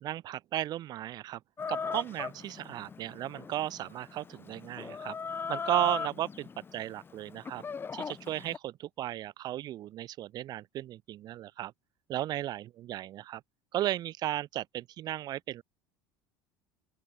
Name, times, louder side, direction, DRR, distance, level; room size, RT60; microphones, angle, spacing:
voice 1, 0.0-1.4 1.7-5.1 5.5-7.6 7.9-11.7 12.1-13.4 13.7-15.6, right 13 dB, 50° right, 0.9 m, -35 dB
Chicken rooster, 1.6-8.6, left 5 dB, 25° left, 1.4 m, -39 dB
open air
supercardioid pair, 100°, 9 cm